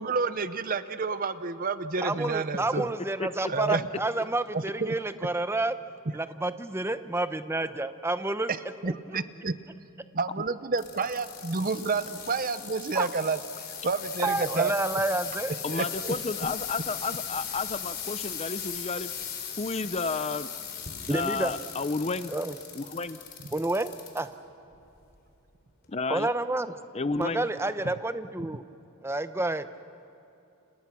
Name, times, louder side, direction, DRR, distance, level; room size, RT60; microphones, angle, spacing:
voice 1, 0.0-2.9 3.5-3.9 4.5-4.9 8.5-8.6 8.8-9.6 10.1-13.4 13.8-14.7 15.7-16.1, right 4 dB, 40° right, 13 dB, 0.8 m, -29 dB
voice 2, 2.0-5.7 6.1-8.5 8.9-9.0 12.9-13.1 14.2-15.6 21.1-21.5 22.3-22.5 23.5-24.3 26.1-26.7 27.2-28.6 29.0-29.6, right 2 dB, 10° right, 11 dB, 0.8 m, -29 dB
sound 1, 10.7-24.2 24.7-25.2 25.8-25.9, left 8 dB, 45° left, 4.2 m, -38 dB
voice 3, 15.6-19.1 19.6-20.5 21.1-22.3 22.7-23.2 25.9-26.3 26.9-27.5, left 3 dB, 30° left, 13 dB, 0.6 m, -31 dB
30.0 x 28.0 x 6.1 m, 2.9 s
head